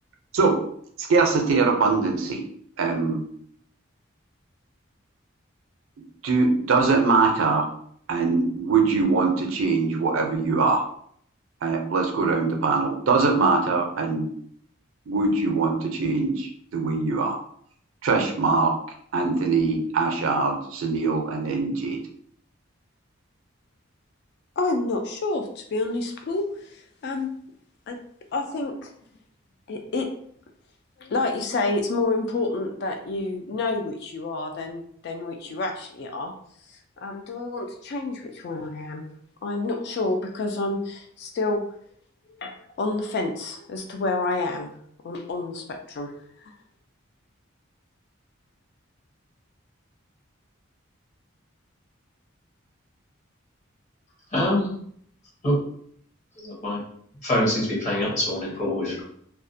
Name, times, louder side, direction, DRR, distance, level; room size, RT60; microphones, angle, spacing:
voice 1, 1.0-2.4 2.8-3.2 6.2-7.7 8.1-10.8 11.6-14.3 15.1-17.4 18.0-18.7 19.1-22.0, right 4 dB, 80° right, 2 dB, 0.5 m, -22 dB
voice 2, 24.6-27.3 27.9-28.0 28.3-28.9 29.7-30.1 31.0-36.3 37.0-39.1 39.4-41.6 42.3-44.7 45.0-46.1, left 2 dB, 55° left, 4 dB, 0.3 m, -29 dB
voice 3, 54.3-54.7 55.4-55.6 56.4-56.8 57.2-59.0, left 1 dB, 35° left, -5 dB, 0.8 m, -24 dB
2.3 x 2.0 x 2.6 m, 0.65 s
head